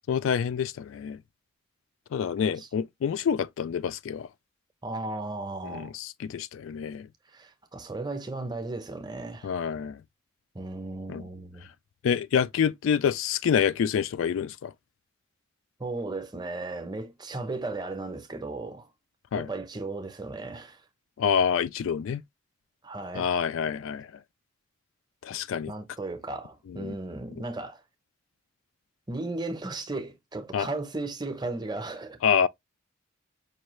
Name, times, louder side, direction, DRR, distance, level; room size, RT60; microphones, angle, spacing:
voice 1, 0.1-1.2 2.1-4.3 5.6-7.1 9.4-10.0 11.1-11.2 12.0-14.7 19.3-19.5 21.2-22.2 23.2-24.1 25.2-25.7 26.7-26.9 30.5-30.7 32.2-32.5, left 7 dB, 70° left, 0.3 m, -27 dB
voice 2, 4.8-5.9 7.3-9.5 10.5-11.7 15.8-18.9 19.3-20.8 22.8-23.3 25.7-27.8 29.1-32.2, right 2 dB, 20° right, 0.7 m, -35 dB
5.4 x 2.3 x 3.0 m
head